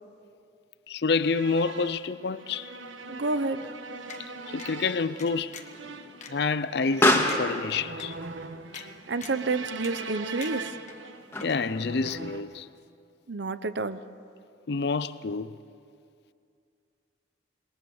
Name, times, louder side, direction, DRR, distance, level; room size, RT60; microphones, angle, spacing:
voice 1, 0.9-2.7 4.5-5.6 6.3-8.2 8.7-8.9 11.4-12.7 14.7-15.5, left 4 dB, 55° left, 0.5 m, -28 dB
sound 1, 1.2-12.4, right 3 dB, 80° right, 1.4 m, -41 dB
Explosion, 2.8-11.8, left 1 dB, 10° left, 2.0 m, -32 dB
voice 2, 3.1-3.7 9.1-10.7 13.3-14.0, right 3 dB, 65° right, 0.7 m, -29 dB
sound 2, 4.1-4.2 4.6-4.7 5.2-5.8 6.2-6.3 6.8-6.9 7.3-7.4 8.0-8.1 8.7-8.9 9.2-9.5 9.8-10.1 10.4-11.0 11.4-11.8 12.1-12.2, left 7 dB, 40° left, 1.4 m, -44 dB
27.0 x 21.5 x 7.1 m
head